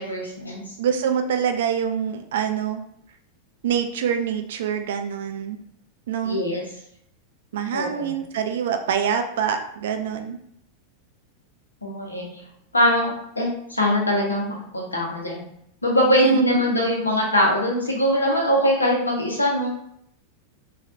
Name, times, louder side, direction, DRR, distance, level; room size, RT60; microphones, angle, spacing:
voice 1, 0.0-0.6 6.2-6.6 7.7-8.1 11.8-12.3 12.7-15.4 15.8-19.7, left 1 dB, 80° left, -1 dB, 0.8 m, -22 dB
voice 2, 0.8-2.8 3.6-5.6 6.1-6.4 7.5-10.4 16.2-16.6, right 7 dB, 60° right, 6 dB, 0.3 m, -25 dB
3.2 x 2.3 x 2.6 m, 0.71 s
figure-of-eight pair, 90°, 0 cm